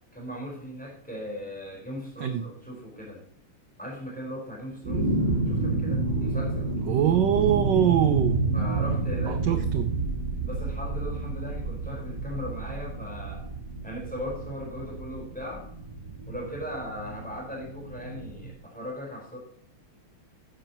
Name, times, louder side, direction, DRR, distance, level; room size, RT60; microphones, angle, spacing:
voice 1, 0.1-3.2 3.8-5.1 5.5-6.7 8.5-9.6 10.4-13.5 13.8-15.7 16.3-19.4, equal, 5° left, -2 dB, 4.6 m, -38 dB
sound 1, 4.8-18.5, right 3 dB, 35° right, 3.3 m, -30 dB
voice 2, 6.9-8.4 9.3-9.9, right 10 dB, 65° right, 9 dB, 1.2 m, -23 dB
12.5 x 10.0 x 3.0 m, 0.66 s
omnidirectional pair, 2.3 m